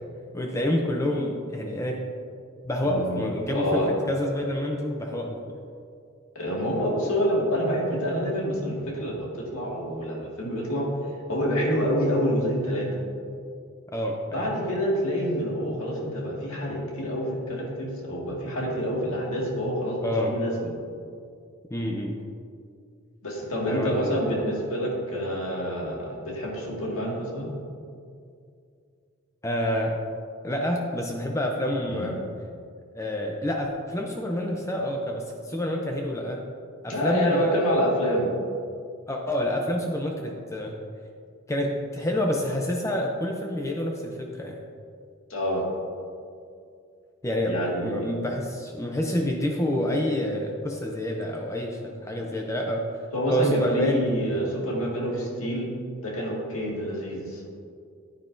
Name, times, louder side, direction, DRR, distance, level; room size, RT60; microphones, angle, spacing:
voice 1, 0.3-2.1 2.6-5.6 13.9-14.5 20.0-20.3 21.7-22.2 23.7-24.1 29.4-30.0 30.4-32.2 32.9-36.4 36.8-37.7 39.1-40.8 41.5-44.6 47.2-52.8 53.3-54.1 55.1-55.3, left 1 dB, 15° left, 1 dB, 0.5 m, -28 dB
voice 2, 2.8-3.2 3.5-3.9 6.4-10.9 11.3-13.0 14.3-20.5 23.2-27.5 31.9-32.1 36.9-38.3 45.3-45.7 47.5-48.1 53.1-55.7 56.0-57.4, equal, 80° left, -3 dB, 1.9 m, -27 dB
9.8 x 9.4 x 2.6 m, 2.3 s
head